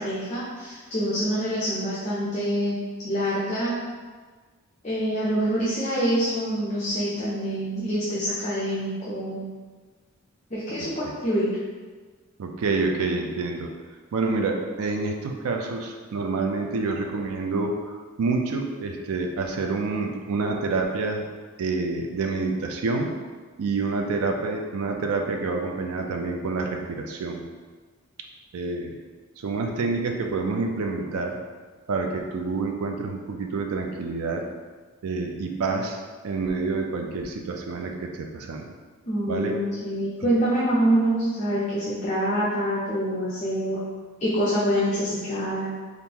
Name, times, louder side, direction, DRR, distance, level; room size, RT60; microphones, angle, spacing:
voice 1, 0.0-2.8 3.0-3.8 4.8-9.5 10.5-11.5 39.1-43.8 44.2-45.7, equal, 30° left, -8 dB, 0.5 m, -26 dB
voice 2, 12.4-13.7 14.1-21.3 21.6-23.2 23.6-27.4 28.5-29.0 29.4-31.4 31.9-34.5 35.0-38.7 39.3-39.6, right 3 dB, 80° right, 3 dB, 0.4 m, -28 dB
3.6 x 2.5 x 2.8 m, 1.4 s
head